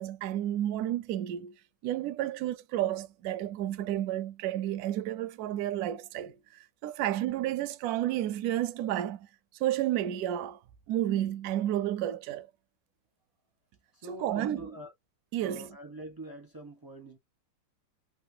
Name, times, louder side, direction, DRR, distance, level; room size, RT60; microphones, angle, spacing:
voice 1, 0.0-1.6 1.8-6.4 6.8-9.3 9.6-10.6 10.9-12.5 14.0-14.8 15.3-15.7, right 12 dB, 75° right, 0.8 m, -31 dB
voice 2, 13.9-14.9 15.4-17.2, right 1 dB, 25° right, 0.4 m, -45 dB
3.8 x 2.0 x 2.6 m
omnidirectional pair, 2.1 m